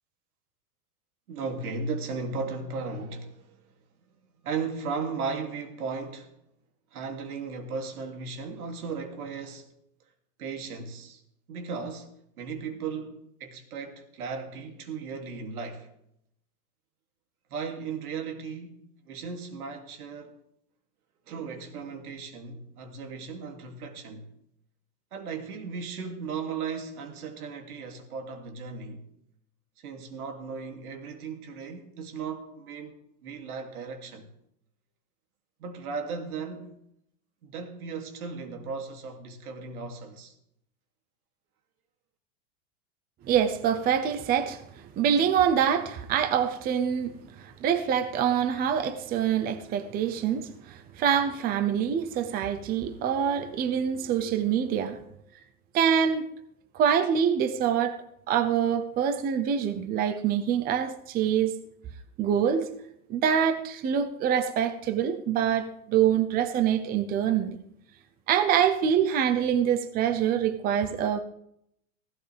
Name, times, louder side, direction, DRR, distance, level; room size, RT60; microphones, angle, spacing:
voice 1, 1.3-3.6 4.4-6.3 6.9-9.7 10.4-11.2 11.5-12.1 12.4-15.9 17.5-20.4 21.3-24.3 25.1-29.0 29.8-33.0 33.2-34.3 35.6-36.7 37.4-40.3, right 5 dB, 90° right, 2.7 m, -36 dB
voice 2, 43.3-44.6 45.0-55.0 55.7-56.3 56.7-58.0 58.3-61.5 62.2-62.7 63.1-67.6 68.3-71.2, right 8 dB, 20° right, 0.7 m, -25 dB
16.5 x 15.5 x 3.4 m
supercardioid pair, 145°, 43 cm